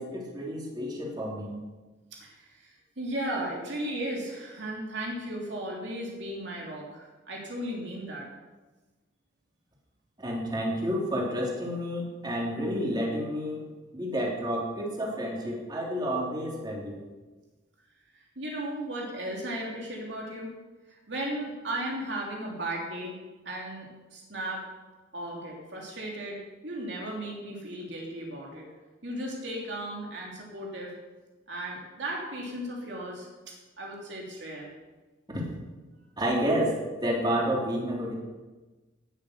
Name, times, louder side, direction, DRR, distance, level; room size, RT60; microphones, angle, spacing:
voice 1, 0.0-1.5 10.2-13.6 13.9-17.0 35.3-35.4 36.2-36.7 37.0-38.1, equal, 20° right, -2 dB, 3.4 m, -30 dB
voice 2, 2.1-8.3 18.1-20.5 21.1-23.2 23.4-24.6 25.1-28.7 29.0-30.9 31.5-34.7, right 1 dB, 65° right, -2 dB, 3.0 m, -36 dB
18.0 x 7.7 x 6.7 m, 1.2 s
head